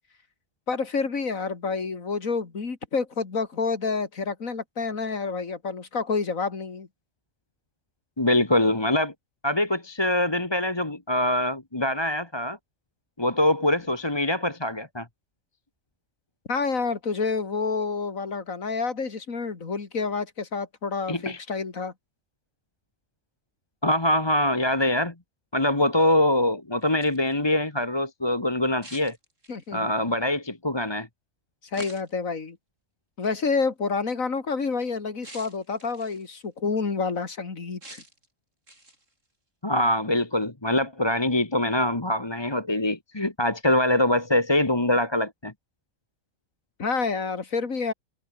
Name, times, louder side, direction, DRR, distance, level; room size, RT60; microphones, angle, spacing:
voice 1, 0.7-6.9 16.5-21.9 29.5-29.9 31.7-32.6 33.2-38.0 46.8-47.9, left 4 dB, 85° left, 2.8 m, -28 dB
voice 2, 8.2-9.1 9.4-12.6 13.2-15.1 21.1-21.4 23.8-25.1 25.5-29.2 29.7-31.1 39.6-45.5, left 1 dB, 20° left, 1.8 m, -24 dB
sound 1, 26.8-27.3 28.8-29.8 31.7-32.3 33.2-33.4 35.2-36.3 37.8-38.3 38.7-39.1, right 1 dB, 70° right, 7.8 m, -46 dB
omnidirectional pair, 1.4 m